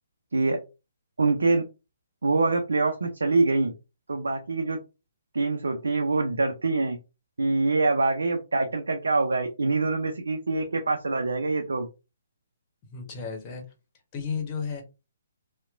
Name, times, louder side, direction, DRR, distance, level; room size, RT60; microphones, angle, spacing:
voice 1, 1.2-1.6 2.2-3.7 4.1-4.8 5.3-7.0 7.4-11.9, right 3 dB, 80° right, 4 dB, 0.5 m, -25 dB
voice 2, 12.9-13.6 14.1-14.8, left 6 dB, 30° left, 3 dB, 1.0 m, -33 dB
2.8 x 2.1 x 2.5 m, 0.29 s
figure-of-eight pair, 135°, 0 cm